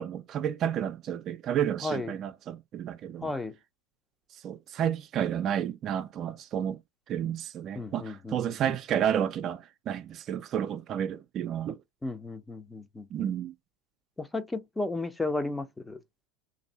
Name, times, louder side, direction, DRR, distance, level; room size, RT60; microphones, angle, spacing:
voice 1, 0.0-3.3 4.4-6.8 7.1-11.8 13.1-13.5, right 9 dB, 40° right, 0.4 m, -31 dB
voice 2, 3.2-3.5 7.7-8.8 12.0-13.1 14.2-16.0, left 2 dB, 10° left, 0.6 m, -34 dB
2.6 x 2.6 x 4.1 m
hypercardioid pair, 100°, 0 cm